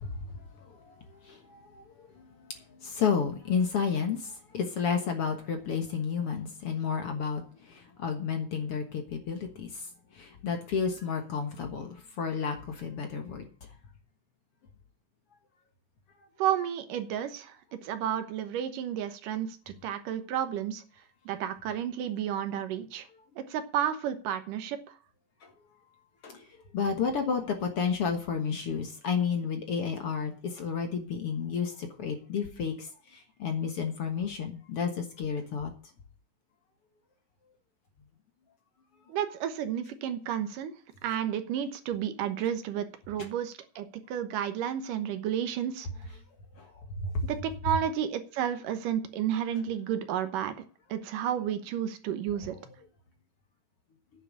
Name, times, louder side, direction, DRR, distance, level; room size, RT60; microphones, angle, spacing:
voice 1, 0.0-2.2 2.8-9.9 10.1-13.4 25.4-25.5 26.2-26.5 26.7-35.7 46.6-47.2, left 6 dB, 55° left, 1.9 m, -32 dB
voice 2, 16.4-17.6 17.8-20.8 21.3-23.1 23.4-24.8 39.1-40.7 41.0-45.9 47.3-50.5 50.9-52.6, right 9 dB, 75° right, 2.7 m, -31 dB
9.9 x 7.0 x 8.5 m
omnidirectional pair, 3.8 m